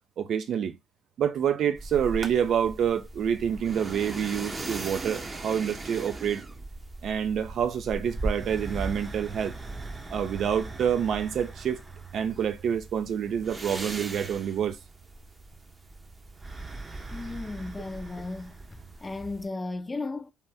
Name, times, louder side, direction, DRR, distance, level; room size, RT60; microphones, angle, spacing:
voice 1, 0.2-0.8 1.2-6.4 7.0-9.6 10.1-11.8 12.1-14.8, right 8 dB, 60° right, 0.4 m, -27 dB
sound 1, 1.8-19.5, right 2 dB, 25° right, 0.7 m, -39 dB
voice 2, 17.1-18.6 19.0-20.3, left 3 dB, 20° left, 0.4 m, -35 dB
2.8 x 2.2 x 3.4 m
supercardioid pair, 75°, 0 cm